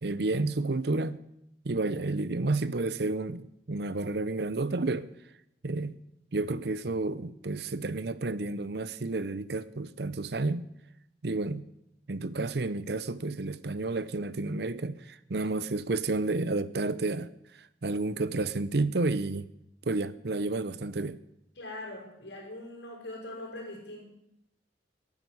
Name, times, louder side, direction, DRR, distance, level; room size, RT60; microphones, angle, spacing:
voice 1, 0.0-1.2 1.6-5.1 5.6-6.0 6.3-10.7 11.2-11.6 12.1-17.3 17.8-19.5 19.9-21.2, right 2 dB, 65° right, 0.7 m, -31 dB
voice 2, 21.6-24.0, left 1 dB, 80° left, 6.6 m, -41 dB
11.5 x 11.0 x 9.6 m
head